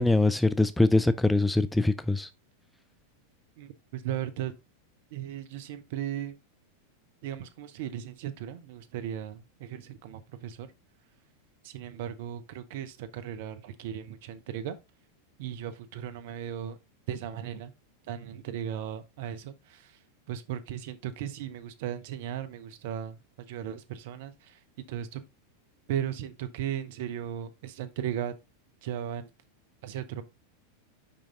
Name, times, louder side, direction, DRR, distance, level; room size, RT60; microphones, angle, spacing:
voice 1, 0.0-2.3, left 2 dB, 5° left, 0.3 m, -23 dB
voice 2, 3.6-4.5 5.1-6.3 7.2-10.7 11.6-14.8 15.4-16.8 17.1-17.7 18.1-19.5 20.3-23.2 23.5-24.3 24.9-25.2 25.9-28.3 28.8-29.3 29.8-30.2, right 10 dB, 50° right, 0.8 m, -36 dB
5.7 x 5.1 x 3.7 m
figure-of-eight pair, 90°, 0 cm